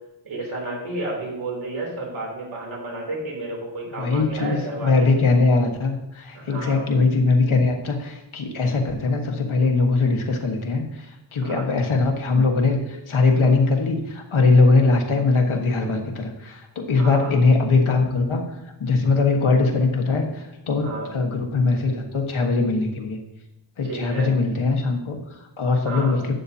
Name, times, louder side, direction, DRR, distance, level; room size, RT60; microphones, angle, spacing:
voice 1, 0.2-5.1 6.3-6.8 11.4-11.7 17.0-17.3 20.8-21.2 23.8-24.3 25.8-26.2, right 2 dB, 80° right, -2 dB, 3.2 m, -31 dB
voice 2, 4.0-18.4 18.8-23.2 23.8-26.3, left 3 dB, 90° left, 2 dB, 1.5 m, -21 dB
12.0 x 8.4 x 2.8 m, 0.92 s
wide cardioid pair, 105°, 47 cm